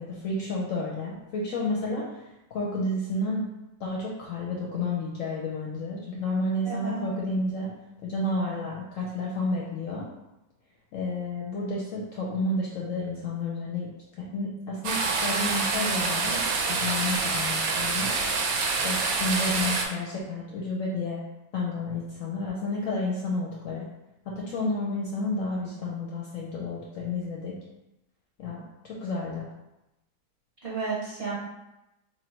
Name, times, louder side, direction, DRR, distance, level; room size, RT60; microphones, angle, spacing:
voice 1, 0.0-2.0 2.5-3.5 3.8-7.7 8.0-10.1 10.9-13.9 14.2-16.4 16.7-18.1 18.8-21.2 21.5-23.9 24.3-27.6 28.4-29.5, left 2 dB, 65° left, -3 dB, 0.8 m, -31 dB
voice 2, 6.6-7.1 30.6-31.4, right 4 dB, 50° right, -7 dB, 0.8 m, -32 dB
sound 1, 14.8-19.9, right 4 dB, 70° right, 0.9 m, -26 dB
3.2 x 2.5 x 4.3 m, 0.93 s
omnidirectional pair, 1.8 m